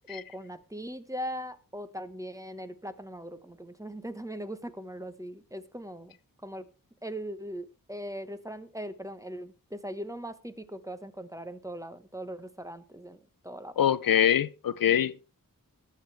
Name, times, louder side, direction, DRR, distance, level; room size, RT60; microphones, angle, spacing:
voice 1, 0.1-6.2 6.4-6.6 7.0-13.7, equal, 10° right, 1.0 m, -40 dB
voice 2, 13.8-15.2, left 9 dB, 75° left, 0.6 m, -24 dB
19.5 x 7.3 x 3.4 m
wide cardioid pair, 95°, 35 cm